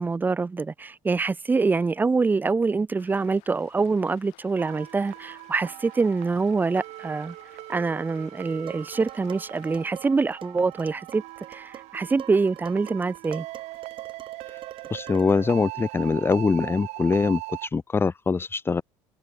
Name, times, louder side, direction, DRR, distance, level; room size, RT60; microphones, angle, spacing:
voice 1, 0.0-7.4 7.7-11.2 11.5-13.5, right 4 dB, 15° right, 0.5 m, -25 dB
sound 1, 3.0-9.9, left 25 dB, 80° left, 7.0 m, -56 dB
sound 2, 4.6-17.7, right 20 dB, 75° right, 6.2 m, -40 dB
Dishes pots and pans, 8.7-15.5, right 9 dB, 50° right, 3.1 m, -46 dB
voice 2, 14.9-18.8, left 4 dB, 20° left, 0.7 m, -23 dB
supercardioid pair, 100°, 11 cm